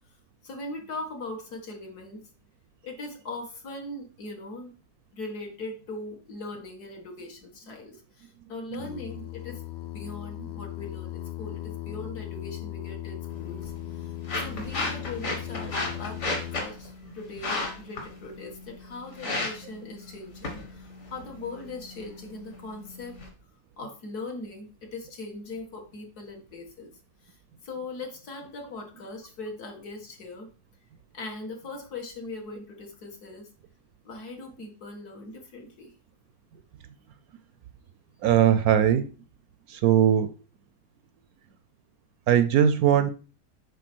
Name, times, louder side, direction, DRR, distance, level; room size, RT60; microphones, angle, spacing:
voice 1, 0.4-2.3 2.8-4.7 5.1-9.6 9.9-23.2 23.8-26.9 27.2-30.5 31.1-33.5 34.0-35.9, left 2 dB, 65° left, 2.1 m, -40 dB
Singing, 8.7-16.6, left 14 dB, 85° left, 0.6 m, -38 dB
sound 1, 13.3-23.3, left 2 dB, 45° left, 2.0 m, -35 dB
voice 2, 38.2-39.1 39.7-40.3 42.3-43.1, right 9 dB, 70° right, 0.9 m, -20 dB
8.3 x 3.4 x 6.1 m
omnidirectional pair, 1.8 m